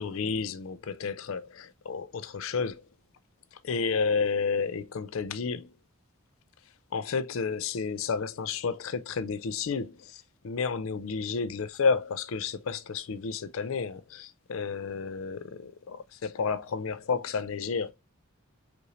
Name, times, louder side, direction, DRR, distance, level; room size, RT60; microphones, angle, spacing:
voice 1, 0.0-2.9 3.5-5.7 6.9-17.9, left 5 dB, 65° left, 0.4 m, -31 dB
5.5 x 2.6 x 3.0 m
head